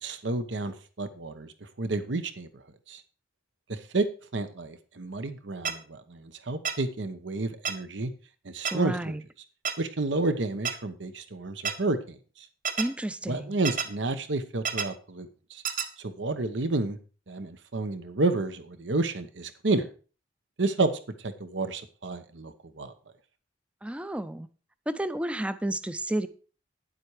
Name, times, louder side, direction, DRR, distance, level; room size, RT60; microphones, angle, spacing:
voice 1, 0.0-1.5 1.8-2.5 2.9-3.0 3.7-4.0 4.3-8.1 8.4-9.1 9.8-12.2 13.3-15.6 16.0-17.0 17.3-19.9 20.6-20.9 21.2-22.9, right 2 dB, 85° right, 11 dB, 1.0 m, -30 dB
sound 1, 5.7-5.8 6.7-6.8 7.7-7.8 8.7-8.8 9.7-9.8 10.7-10.8 11.7-11.8 12.7-12.9 13.7-13.9 14.7-14.9 15.7-15.9, right 6 dB, 50° right, 1.1 m, -28 dB
voice 2, 8.7-9.2 12.8-13.6 23.8-24.5 24.9-26.3, right 1 dB, 5° right, 13 dB, 0.4 m, -31 dB
9.8 x 7.8 x 4.8 m, 0.38 s
head